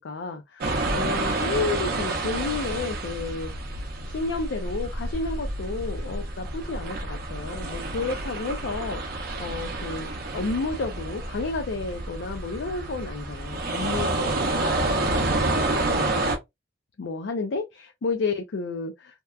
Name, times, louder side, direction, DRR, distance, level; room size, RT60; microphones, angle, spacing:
voice 1, 0.0-3.5 4.1-16.1 17.0-19.2, left 3 dB, 65° left, 0.4 m, -31 dB
sound 1, 0.6-16.4, right 2 dB, 55° right, 0.6 m, -29 dB
2.8 x 2.2 x 2.3 m
head